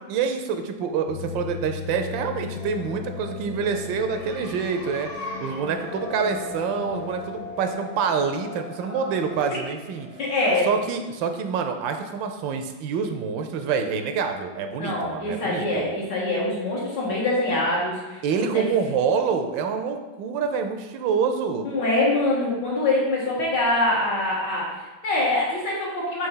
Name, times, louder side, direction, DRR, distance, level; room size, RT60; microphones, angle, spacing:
voice 1, 0.0-5.1 5.4-10.1 10.7-15.9 18.2-21.7, right 6 dB, 85° right, 6 dB, 1.3 m, -26 dB
sound 1, 1.1-7.7, left 7 dB, 85° left, 1.4 m, -38 dB
sound 2, 2.3-11.7, left 2 dB, 50° left, 0.9 m, -39 dB
voice 2, 10.2-10.7 14.8-18.7 21.6-26.3, left 2 dB, 70° left, -5 dB, 2.2 m, -24 dB
5.8 x 3.0 x 5.5 m, 1.1 s
omnidirectional pair, 2.0 m